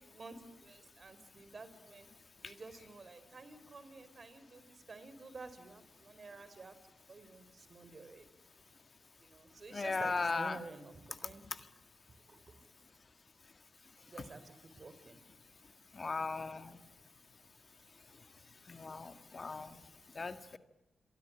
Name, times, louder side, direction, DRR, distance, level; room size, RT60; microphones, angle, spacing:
voice 1, 0.0-2.1 2.4-6.7 7.1-8.3 9.2-11.5 12.3-12.5 14.1-15.2, right 3 dB, 50° right, 12 dB, 4.7 m, -51 dB
voice 2, 9.7-10.6 16.0-16.8 18.7-19.7 20.2-20.6, left 4 dB, 45° left, 10 dB, 1.8 m, -37 dB
28.5 x 23.0 x 8.9 m, 0.90 s
supercardioid pair, 45°, 0 cm